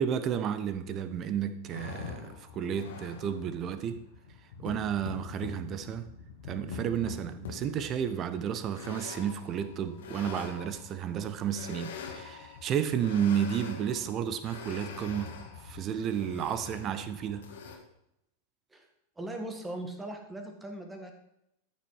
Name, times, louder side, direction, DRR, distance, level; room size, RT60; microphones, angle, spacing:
voice 1, 0.0-4.0 4.6-6.1 6.5-17.5, right 8 dB, 30° right, 0.9 m, -32 dB
sound 1, 1.7-17.8, left 6 dB, 60° left, 1.8 m, -44 dB
voice 2, 19.2-21.1, right 1 dB, 10° right, 1.8 m, -39 dB
13.0 x 6.3 x 4.7 m
figure-of-eight pair, 90°, 0 cm